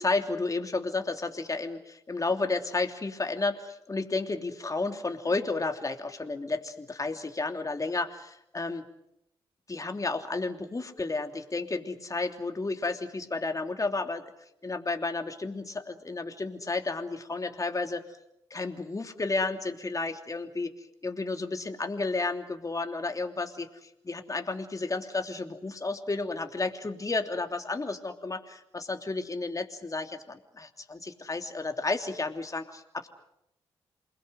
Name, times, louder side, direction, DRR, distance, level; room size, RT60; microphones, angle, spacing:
voice 1, 0.0-8.8 9.7-14.2 14.6-18.0 18.5-20.7 21.0-23.7 24.0-33.1, left 3 dB, 30° left, 5 dB, 3.0 m, -32 dB
28.0 x 21.0 x 7.8 m, 0.78 s
hypercardioid pair, 40°, 12 cm